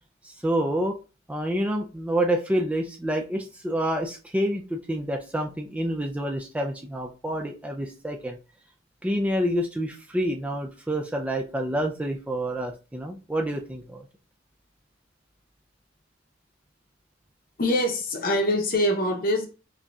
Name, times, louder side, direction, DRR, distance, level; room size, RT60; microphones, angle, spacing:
voice 1, 0.2-1.0 1.3-8.4 9.0-14.0, right 1 dB, 5° right, 0.3 m, -28 dB
voice 2, 17.6-19.5, left 1 dB, 45° left, 0.7 m, -24 dB
5.0 x 2.7 x 2.3 m
head